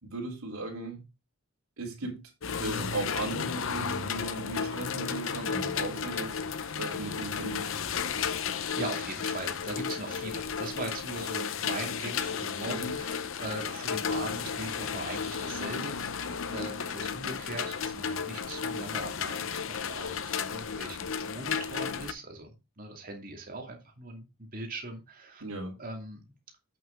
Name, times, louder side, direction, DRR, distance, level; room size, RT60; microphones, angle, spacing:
voice 1, 0.0-1.0 1.8-2.2 2.5-6.4 6.8-7.7 12.6-12.9 25.4-25.8, right 2 dB, 85° right, 3.7 m, -37 dB
sound 1, 2.4-22.1, left 6 dB, 65° left, 0.7 m, -33 dB
voice 2, 8.6-22.5 22.8-25.4 25.8-26.2, right 2 dB, 40° right, 2.5 m, -40 dB
8.6 x 6.9 x 3.8 m
head